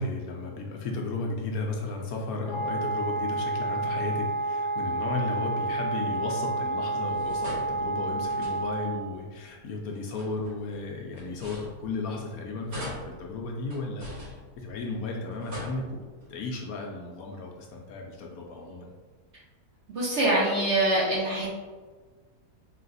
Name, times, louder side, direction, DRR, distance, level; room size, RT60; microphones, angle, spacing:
voice 1, 0.0-14.1 14.6-16.0 16.3-18.9, left 3 dB, 70° left, 0 dB, 0.9 m, -34 dB
Wind instrument woodwind instrument, 2.4-9.1, right 2 dB, 45° left, 0.8 m, -30 dB
sound 1, 7.1-9.0 9.9-12.3 12.7-15.0 15.3-16.3, left 1 dB, 85° right, 2.3 m, -43 dB
voice 2, 19.9-21.5, right 1 dB, 55° right, -4 dB, 0.9 m, -24 dB
4.0 x 2.5 x 3.8 m, 1.4 s
omnidirectional pair, 1.8 m